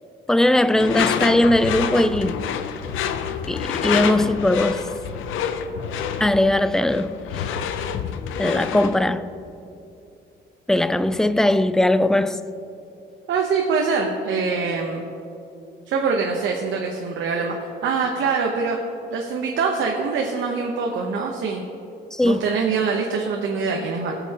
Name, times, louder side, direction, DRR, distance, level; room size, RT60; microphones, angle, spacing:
voice 1, 0.3-2.4 3.5-4.9 5.8-5.9 6.2-7.2 8.4-9.3 10.7-12.4 22.1-22.5, left 1 dB, 5° left, 0.3 m, -19 dB
Door / Screech, 0.8-9.0, left 7 dB, 85° left, 0.6 m, -27 dB
voice 2, 13.3-15.0 15.9-18.8 19.1-21.6 22.2-24.1, right 5 dB, 75° right, 0.9 m, -24 dB
17.5 x 6.9 x 2.9 m
cardioid pair, 90°, 20 cm